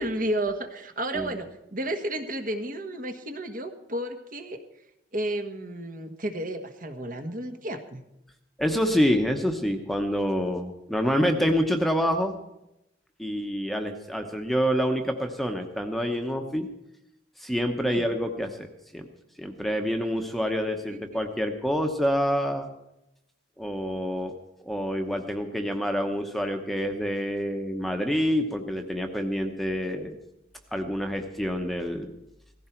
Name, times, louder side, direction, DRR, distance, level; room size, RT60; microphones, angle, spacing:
voice 1, 0.0-4.6 5.1-8.0 17.8-18.1 20.9-21.2, right 1 dB, 50° right, 6 dB, 1.4 m, -32 dB
voice 2, 8.6-12.3 13.2-16.7 17.4-19.1 19.4-22.7 23.6-24.3 24.6-30.2 30.7-32.1, equal, ahead, 4 dB, 1.0 m, -27 dB
17.0 x 15.0 x 4.5 m, 0.87 s
head